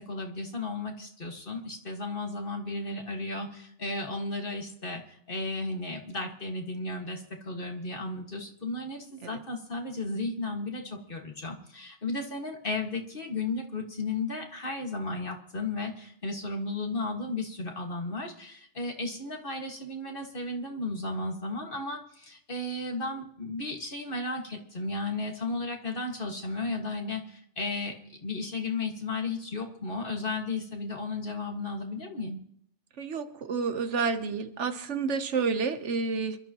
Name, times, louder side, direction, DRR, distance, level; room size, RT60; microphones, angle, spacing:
voice 1, 0.0-28.0 28.2-32.4, left 2 dB, 50° left, 2 dB, 2.0 m, -34 dB
voice 2, 33.0-36.4, right 5 dB, 75° right, 9 dB, 1.3 m, -29 dB
26.5 x 12.5 x 3.0 m, 0.68 s
omnidirectional pair, 1.2 m